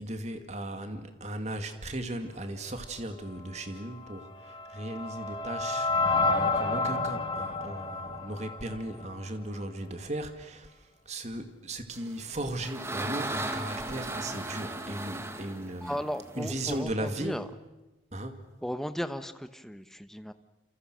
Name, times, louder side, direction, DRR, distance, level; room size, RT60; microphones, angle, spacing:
voice 1, 0.0-5.9 6.3-16.0 16.3-17.4 18.1-18.4, right 1 dB, 40° right, 7 dB, 2.4 m, -37 dB
sound 1, 4.1-9.3, left 3 dB, 30° left, 2.2 m, -30 dB
sound 2, 12.1-16.8, right 2 dB, 15° right, 1.7 m, -36 dB
voice 2, 15.8-17.5 18.6-20.3, equal, ahead, 10 dB, 1.0 m, -35 dB
28.5 x 27.0 x 6.4 m, 1.1 s
head